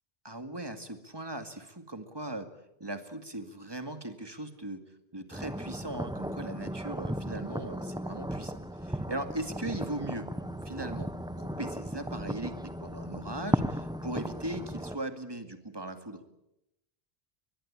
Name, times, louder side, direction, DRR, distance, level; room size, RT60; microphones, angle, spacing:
voice 1, 0.2-2.5 2.8-4.8 5.1-10.3 10.6-11.1 11.4-16.2, right 1 dB, 20° right, 8 dB, 2.1 m, -39 dB
sound 1, 5.3-15.0, equal, 5° right, 0.8 m, -36 dB
23.0 x 20.5 x 8.8 m, 0.86 s
omnidirectional pair, 1.1 m